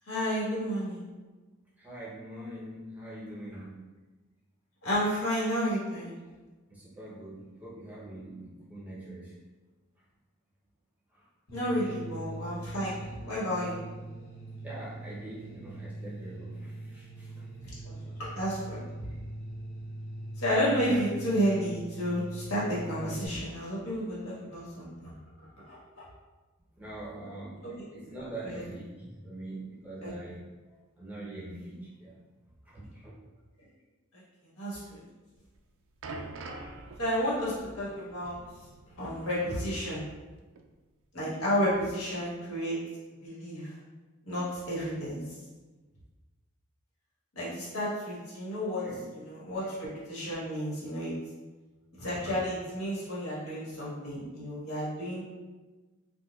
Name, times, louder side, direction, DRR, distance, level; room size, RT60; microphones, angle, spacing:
voice 1, 0.1-1.1 4.8-6.2 11.5-13.8 17.6-19.1 20.4-25.1 25.7-25.8 27.6-28.7 30.0-30.1 34.1-34.2 34.6-35.0 37.0-38.4 39.0-40.0 41.1-42.8 43.2-43.8 44.2-45.4 47.3-51.1 52.0-55.2, equal, 80° left, -9 dB, 1.4 m, -32 dB
voice 2, 1.8-3.8 6.7-9.3 11.1-11.2 11.8-12.0 14.6-17.4 18.0-18.2 26.8-30.4 31.0-32.2 32.7-33.1 48.8-49.0, right 1 dB, 5° right, -8 dB, 0.7 m, -43 dB
sound 1, 11.5-23.3, right 1 dB, 45° left, 0.9 m, -42 dB
sound 2, 35.4-40.3 40.6-40.7 41.5-41.6, right 2 dB, 60° right, 0.3 m, -46 dB
4.4 x 2.2 x 2.3 m, 1.3 s
head